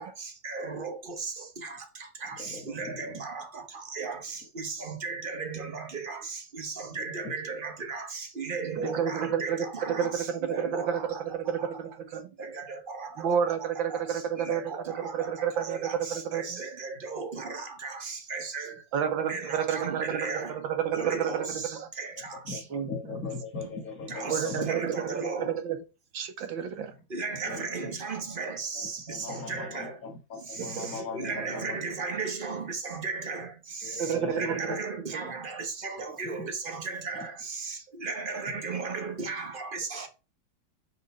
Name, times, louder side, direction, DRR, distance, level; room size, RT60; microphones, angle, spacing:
voice 1, 0.0-11.7 12.4-13.3 13.9-18.8 19.3-20.7 20.9-22.7 23.6-23.8 24.1-25.6 27.1-30.0 30.3-40.1, right 4 dB, 35° right, 1.0 m, -36 dB
voice 2, 2.4-3.2 22.5-24.7 27.4-27.7 28.4-31.8 33.8-34.8 36.0-36.2, left 4 dB, 45° left, 2.2 m, -39 dB
voice 3, 8.8-12.3 13.2-14.6 14.9-16.6 18.9-21.9 22.7-22.9 24.3-25.8 26.1-26.9 30.6-30.9 34.0-34.8, right 8 dB, 80° right, 1.9 m, -30 dB
6.4 x 4.1 x 5.3 m
omnidirectional pair, 2.1 m